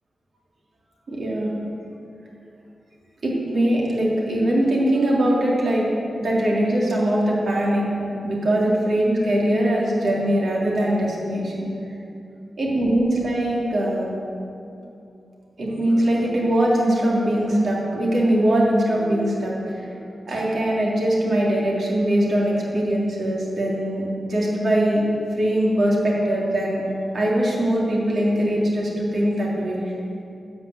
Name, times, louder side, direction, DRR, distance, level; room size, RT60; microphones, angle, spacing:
voice 1, 1.1-1.5 3.2-5.9 6.2-11.6 12.6-14.1 15.6-25.0 25.3-26.8 27.1-29.8, right 1 dB, 60° right, -4 dB, 3.6 m, -21 dB
13.0 x 7.7 x 8.3 m, 2.6 s
wide cardioid pair, 110°, 0 cm